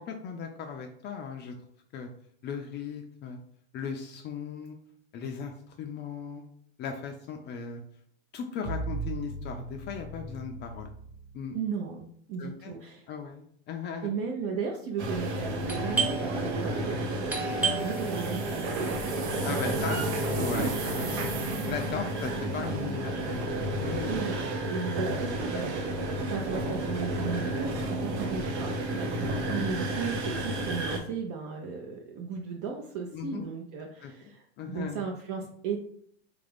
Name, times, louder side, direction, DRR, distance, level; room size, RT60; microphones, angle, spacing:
voice 1, 0.0-1.5 1.9-2.1 2.4-3.4 3.7-4.8 5.1-6.4 6.8-7.8 8.3-10.9 11.3-11.6 12.4-12.7 13.1-14.1 19.4-20.0 20.3-21.2 21.6-23.5 23.8-24.2 25.4-25.7 33.1-33.5 34.0-34.1 34.6-35.1, left 6 dB, 35° left, 4 dB, 0.4 m, -37 dB
sound 1, 8.6-11.7, right 3 dB, 30° right, 1.1 m, -38 dB
voice 2, 11.5-13.1 14.0-19.1 19.5-19.6 19.8-20.8 24.1-35.8, right 6 dB, 50° right, 0 dB, 0.6 m, -36 dB
sound 2, 15.0-31.0, right 1 dB, 80° right, 0.9 m, -31 dB
Doorbell, 15.7-21.1, right 4 dB, 5° right, 0.8 m, -35 dB
3.5 x 2.5 x 3.4 m, 0.65 s
hypercardioid pair, 110°, 33 cm